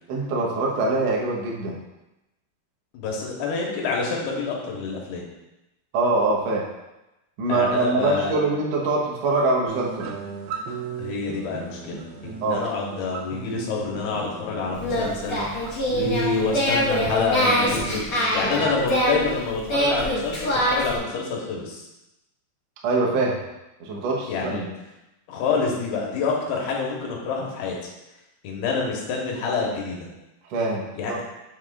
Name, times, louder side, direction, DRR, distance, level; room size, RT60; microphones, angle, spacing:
voice 1, 0.1-1.8 5.9-6.7 7.4-10.1 12.4-12.6 22.8-23.4 23.8-24.7 30.5-31.2, right 3 dB, 65° right, -2 dB, 1.7 m, -23 dB
voice 2, 2.9-5.3 7.5-8.4 11.0-15.4 15.9-21.9 24.3-24.7 25.3-27.8 28.4-30.1 31.0-31.1, left 4 dB, 85° left, -1 dB, 3.1 m, -27 dB
sound 1, 9.7-18.7, right 5 dB, 85° right, 2.7 m, -36 dB
Singing, 14.7-21.0, equal, 65° left, 0.8 m, -24 dB
7.3 x 7.0 x 2.5 m, 0.96 s
omnidirectional pair, 4.5 m